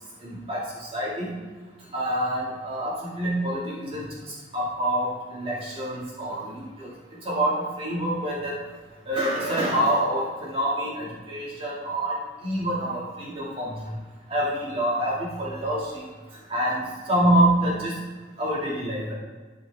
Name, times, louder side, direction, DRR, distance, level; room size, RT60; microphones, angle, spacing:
voice 1, 0.2-1.3 1.9-8.6 9.0-13.9 14.3-16.1 16.5-18.0 18.4-19.1, right 1 dB, 30° right, -6 dB, 2.3 m, -27 dB
13.0 x 5.2 x 3.6 m, 1.4 s
head